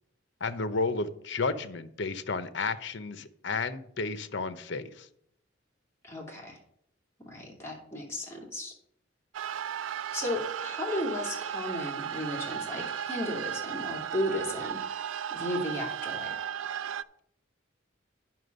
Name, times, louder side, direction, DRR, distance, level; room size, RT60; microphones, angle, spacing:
voice 1, 0.4-5.1, left 4 dB, 65° left, 12 dB, 0.7 m, -32 dB
voice 2, 6.0-6.6 7.2-8.7 10.1-15.0 15.3-16.4, left 1 dB, 15° left, -2 dB, 2.5 m, -35 dB
sound 1, 9.3-17.0, right 9 dB, 85° right, 0.4 m, -35 dB
9.6 x 5.9 x 5.3 m, 0.71 s
head